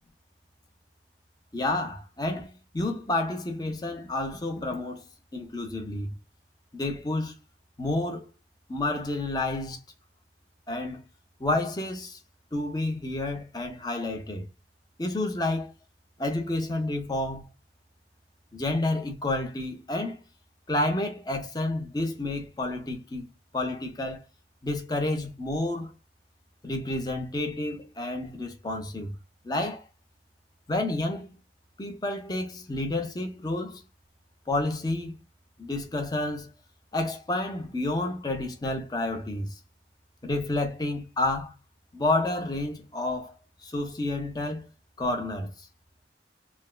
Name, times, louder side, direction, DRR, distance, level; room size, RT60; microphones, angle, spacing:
voice 1, 1.5-5.0 5.3-6.1 6.7-7.3 7.8-8.3 8.7-9.8 10.7-11.0 11.4-12.2 12.5-14.4 15.0-15.7 16.2-17.5 18.5-20.2 20.7-23.3 23.5-24.2 24.6-25.9 26.6-29.1 29.4-29.9 30.7-31.3 31.8-33.8 34.5-35.2 35.6-36.5 36.9-39.6 40.2-41.5 41.9-44.6 45.0-45.7, left 2 dB, 20° left, 0.7 m, -30 dB
3.3 x 2.1 x 2.3 m
head